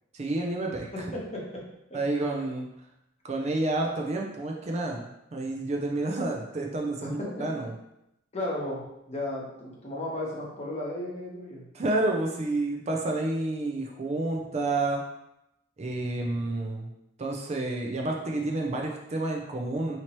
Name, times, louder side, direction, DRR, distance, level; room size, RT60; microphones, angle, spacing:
voice 1, 0.1-1.1 1.9-2.7 3.2-7.7 11.7-15.0 15.8-16.9 17.2-20.0, right 2 dB, 35° right, 1 dB, 0.5 m, -29 dB
voice 2, 0.9-1.6 1.9-2.0 7.0-7.5 8.3-11.6, left 1 dB, 35° left, -4 dB, 1.0 m, -35 dB
4.5 x 2.9 x 3.0 m, 0.84 s
head